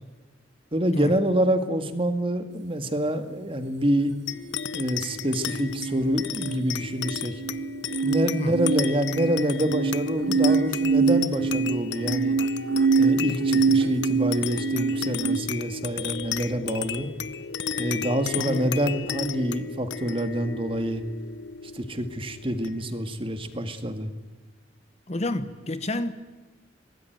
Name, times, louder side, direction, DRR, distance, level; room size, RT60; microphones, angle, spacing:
voice 1, 0.7-4.1 4.7-7.3 8.0-12.4 13.0-17.1 17.8-21.0 21.7-24.1, right 1 dB, 30° right, 2.0 m, -26 dB
sound 1, 4.3-23.1, left 7 dB, 65° left, 0.8 m, -34 dB
sound 2, 5.7-15.4, right 4 dB, 65° right, 0.9 m, -25 dB
voice 2, 18.4-18.7 25.1-26.1, left 1 dB, 35° left, 1.2 m, -30 dB
sound 3, 18.8-20.3, right 3 dB, 85° right, 4.5 m, -49 dB
24.5 x 19.5 x 9.3 m
head